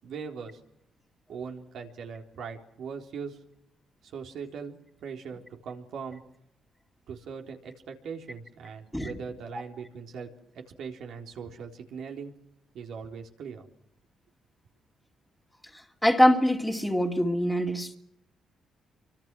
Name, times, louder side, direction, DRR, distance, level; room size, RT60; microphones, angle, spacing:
voice 1, 0.0-0.6 1.3-3.4 4.0-6.2 7.1-10.3 10.5-12.3 12.7-13.7, right 6 dB, 70° right, 3.9 m, -40 dB
voice 2, 16.0-18.0, equal, 5° left, 2.6 m, -23 dB
27.5 x 25.0 x 6.2 m
cardioid pair, 90°, 0 cm